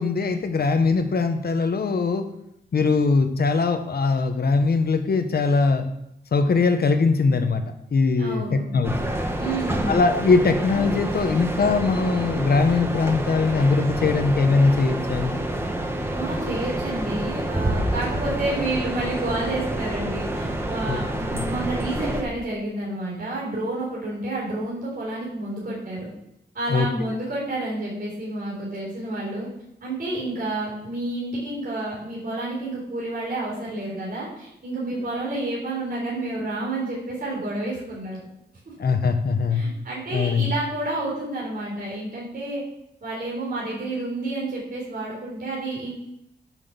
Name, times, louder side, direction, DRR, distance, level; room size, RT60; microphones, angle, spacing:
voice 1, 0.0-2.2 2.7-5.9 6.3-7.6 7.9-9.1 9.9-15.4 20.9-21.0 26.7-26.9 38.8-39.7 40.1-40.5, left 4 dB, 60° left, 8 dB, 1.1 m, -21 dB
voice 2, 8.2-8.6 9.4-9.9 16.1-26.1 26.5-29.5 29.8-38.2 39.5-42.6 43.0-45.9, right 2 dB, 55° right, -6 dB, 3.9 m, -30 dB
sound 1, 8.8-22.2, right 1 dB, 15° right, 1.2 m, -28 dB
9.2 x 6.2 x 6.9 m, 0.81 s
wide cardioid pair, 145°, 18 cm